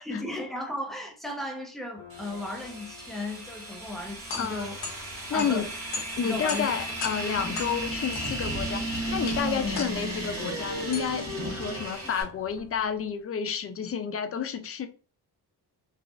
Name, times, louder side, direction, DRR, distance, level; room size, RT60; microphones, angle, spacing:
voice 1, 0.0-4.8 5.3-5.7 6.2-6.7 7.2-7.3 9.6-9.7, left 1 dB, ahead, 0.8 m, -35 dB
sound 1, 2.0-12.6, left 5 dB, 65° left, 1.1 m, -49 dB
sound 2, 2.1-12.2, right 1 dB, 35° right, 1.5 m, -34 dB
sound 3, 3.9-13.0, left 4 dB, 80° left, 0.9 m, -40 dB
voice 2, 4.4-4.7 5.3-5.7 6.2-8.9 9.1-14.9, left 7 dB, 35° left, 0.4 m, -30 dB
3.1 x 2.4 x 2.4 m
cardioid pair, 80°, 42 cm